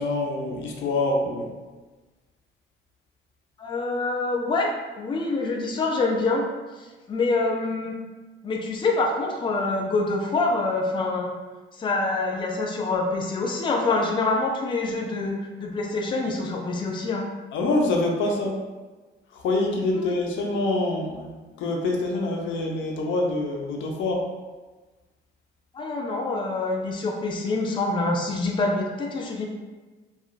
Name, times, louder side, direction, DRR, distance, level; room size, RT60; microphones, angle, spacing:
voice 1, 0.0-1.5 17.5-18.6 19.4-21.3 21.6-24.2, left 2 dB, 75° left, 0 dB, 0.5 m, -25 dB
voice 2, 3.6-6.5 6.8-8.0 8.4-11.3 11.7-17.3 19.9-20.1 25.7-29.5, left 3 dB, 25° left, 1 dB, 0.4 m, -26 dB
2.8 x 2.3 x 2.4 m, 1.3 s
cardioid pair, 90°, 20 cm